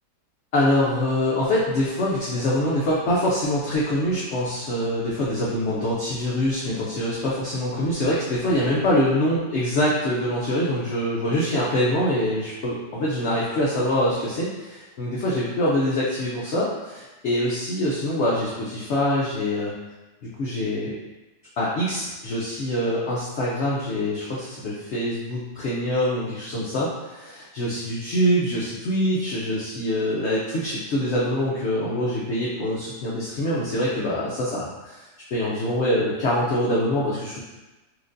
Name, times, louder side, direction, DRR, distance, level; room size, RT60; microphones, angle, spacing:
voice 1, 0.5-19.7 20.4-20.9 21.6-35.0 35.3-37.4, left 1 dB, 90° left, -6 dB, 0.6 m, -24 dB
4.4 x 2.4 x 2.5 m, 1.1 s
omnidirectional pair, 1.9 m